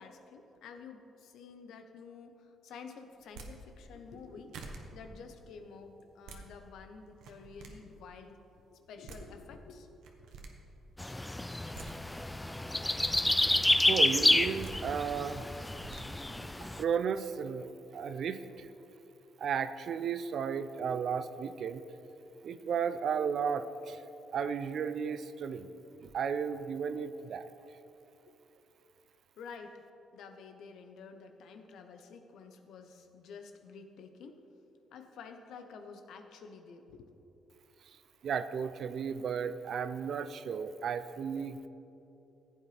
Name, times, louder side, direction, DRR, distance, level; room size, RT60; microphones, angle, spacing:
voice 1, 0.0-4.6 4.9-8.4 8.7-10.3 28.3-28.4 29.4-29.8 30.1-34.4 34.9-37.1, left 5 dB, 80° left, 6 dB, 0.9 m, -50 dB
sound 1, 3.2-3.5 4.2-4.3 4.5-4.8 6.0-6.4 7.1-7.7 8.8-8.9 9.1-9.2 10.0-10.5 11.5-11.9 12.8-13.2 14.4-14.7 15.6-16.0, right 4 dB, 85° right, 1.1 m, -47 dB
sound 2, 11.0-16.8, left 1 dB, 10° left, 0.3 m, -29 dB
voice 2, 13.7-15.4 16.8-18.7 19.4-21.8 22.4-24.0 24.3-25.7 26.0-27.5 38.2-41.7, right 7 dB, 60° right, 12 dB, 0.5 m, -34 dB
15.0 x 8.7 x 3.4 m, 3.0 s
cardioid pair, 90°, 0 cm